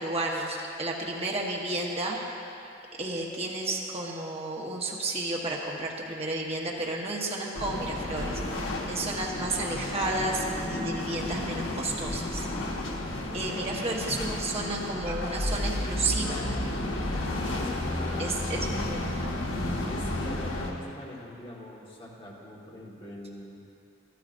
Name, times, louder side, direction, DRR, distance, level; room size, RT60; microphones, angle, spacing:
voice 1, 0.0-2.2 3.0-8.6 8.9-12.5 13.3-16.4 18.2-19.3, right 2 dB, 35° right, -2 dB, 1.2 m, -32 dB
sound 1, 7.5-20.7, left 1 dB, 85° left, 1.2 m, -32 dB
voice 2, 13.3-13.7 17.6-18.4 19.8-23.6, left 1 dB, 30° left, -4 dB, 1.6 m, -43 dB
13.5 x 13.0 x 2.6 m, 2.7 s
head